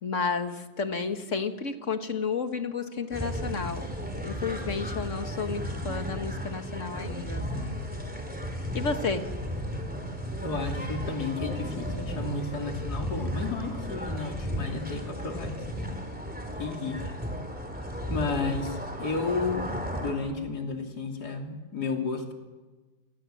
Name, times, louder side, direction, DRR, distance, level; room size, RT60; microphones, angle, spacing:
voice 1, 0.0-3.9 4.2-7.4 8.7-9.3, left 5 dB, 45° left, 7 dB, 1.9 m, -31 dB
sound 1, 3.1-20.1, equal, 5° right, 4.1 m, -34 dB
voice 2, 10.4-16.0 16.6-17.1 18.1-22.3, left 4 dB, 65° left, 3 dB, 3.5 m, -32 dB
29.5 x 24.0 x 7.8 m, 1.3 s
omnidirectional pair, 1.9 m